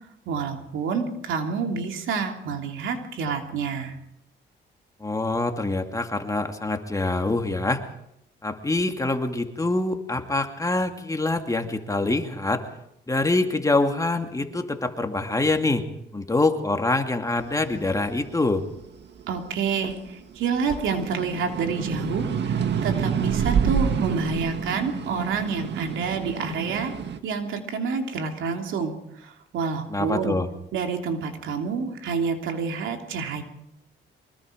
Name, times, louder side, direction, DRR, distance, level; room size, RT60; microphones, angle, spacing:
voice 1, 0.3-4.0 19.3-26.9 27.2-30.4 30.7-33.4, right 5 dB, 80° right, 4 dB, 3.1 m, -28 dB
voice 2, 5.0-7.8 8.4-12.7 13.1-15.9 16.1-18.7 29.9-30.5, left 2 dB, 15° left, 5 dB, 2.4 m, -25 dB
sound 1, 17.6-20.1 20.5-27.2, right 7 dB, 60° right, 1.9 m, -28 dB
24.0 x 21.5 x 5.2 m, 0.78 s
cardioid pair, 90°, 20 cm